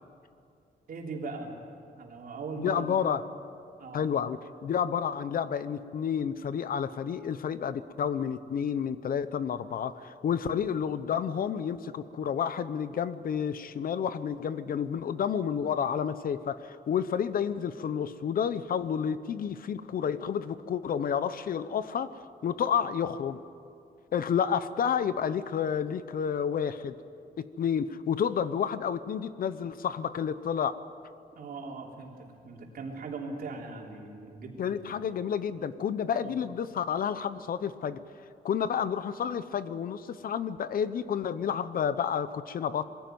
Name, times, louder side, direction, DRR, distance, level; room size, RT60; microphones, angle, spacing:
voice 1, 0.9-1.5 1.9-2.9 3.8-4.1 31.3-34.8 36.1-36.3, right 3 dB, 60° right, -1 dB, 3.6 m, -39 dB
voice 2, 2.6-3.2 3.9-23.4 24.1-26.9 27.4-30.8 34.6-38.0 38.4-42.8, left 7 dB, 60° left, 14 dB, 0.8 m, -30 dB
22.0 x 16.0 x 9.3 m, 2.4 s
wide cardioid pair, 150°, 17 cm